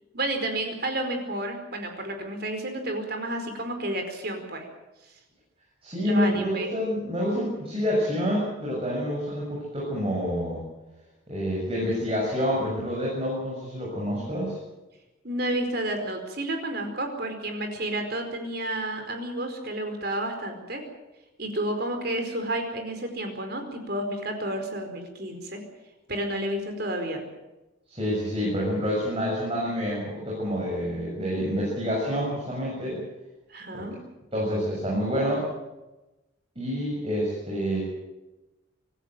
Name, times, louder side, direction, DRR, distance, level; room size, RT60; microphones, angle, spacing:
voice 1, 0.1-4.6 6.0-6.7 15.2-20.8 21.4-25.6 26.1-27.2 33.5-34.0, right 1 dB, 50° right, 5 dB, 4.7 m, -31 dB
voice 2, 5.8-10.6 11.3-14.6 27.9-33.0 33.7-33.9 34.3-35.5 36.5-37.8, equal, 30° right, -5 dB, 6.9 m, -28 dB
25.5 x 14.0 x 9.1 m, 1.0 s
head